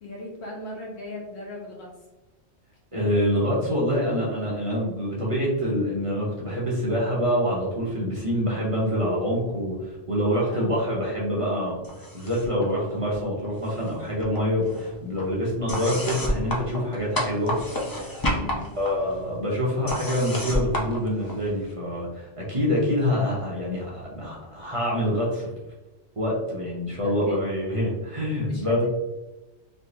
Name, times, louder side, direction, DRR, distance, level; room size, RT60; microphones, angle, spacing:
voice 1, 0.0-1.9 10.5-10.7 18.3-18.7 27.0-27.4 28.4-28.9, left 1 dB, 70° left, -3 dB, 1.3 m, -38 dB
voice 2, 2.9-11.8 12.1-17.5 17.9-18.2 18.8-25.5 26.2-28.9, equal, 35° right, -5 dB, 0.7 m, -26 dB
sound 1, 11.8-12.6 12.9-13.9 14.2-21.7, equal, 30° left, 0.4 m, -31 dB
3.4 x 2.8 x 2.6 m, 1.1 s
omnidirectional pair, 1.2 m